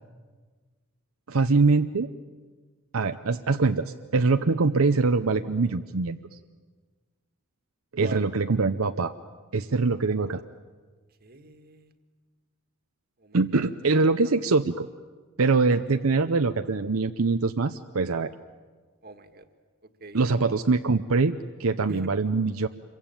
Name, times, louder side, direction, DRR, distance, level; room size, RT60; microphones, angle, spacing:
voice 1, 1.3-2.1 2.9-6.2 7.9-9.1 9.5-10.4 13.3-14.9 15.4-18.3 20.1-22.7, right 3 dB, 75° right, 7 dB, 0.7 m, -23 dB
voice 2, 8.0-8.3 11.2-11.9 13.2-13.6 19.0-19.4 20.0-20.3 21.9-22.1, right 2 dB, 45° right, 8 dB, 1.8 m, -42 dB
27.0 x 23.0 x 9.0 m, 1.4 s
head